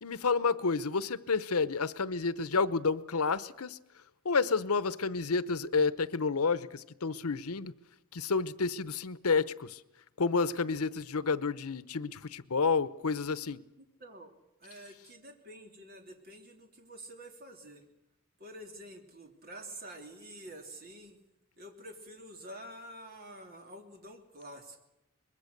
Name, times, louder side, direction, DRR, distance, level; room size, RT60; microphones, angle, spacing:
voice 1, 0.0-3.8 4.2-7.7 8.1-9.8 10.2-13.6, left 4 dB, 85° left, 0.8 m, -30 dB
voice 2, 13.8-17.8 18.4-21.2 21.6-24.9, right 1 dB, 45° right, 3.2 m, -48 dB
24.5 x 21.5 x 6.7 m
head